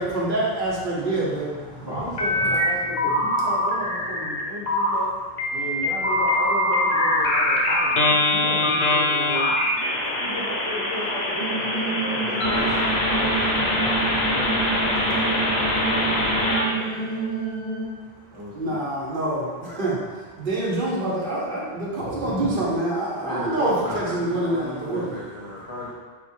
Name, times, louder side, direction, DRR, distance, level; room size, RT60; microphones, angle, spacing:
voice 1, 0.0-1.9 18.5-25.1, right 1 dB, 60° right, -6 dB, 1.1 m, -26 dB
voice 2, 1.8-5.1 5.5-9.8 10.2-12.5 13.1-16.1 16.7-17.4 18.3-18.8, left 1 dB, 25° right, -8 dB, 1.1 m, -35 dB
sound 1, 2.2-2.7 3.0-4.4 4.7-5.0 5.4-16.7, left 1 dB, 90° left, 1.0 m, -23 dB
sound 2, 11.4-17.9, right 4 dB, 75° right, 0.8 m, -29 dB
voice 3, 12.0-12.9 15.8-16.3 19.6-19.8 23.2-25.9, equal, 40° left, -7 dB, 0.6 m, -34 dB
3.5 x 2.6 x 4.6 m, 1.4 s
omnidirectional pair, 1.0 m